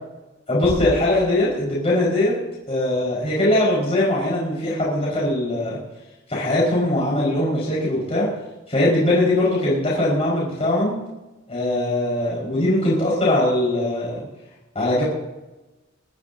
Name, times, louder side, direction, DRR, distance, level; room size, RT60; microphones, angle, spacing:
voice 1, 0.5-2.3 2.7-5.8 6.3-8.3 8.7-11.0 11.5-14.2 14.7-15.0, left 1 dB, 30° left, -7 dB, 5.1 m, -21 dB
Bass drum, 0.6-2.1, equal, 5° right, 4.6 m, -34 dB
24.0 x 13.5 x 2.8 m, 1.1 s
head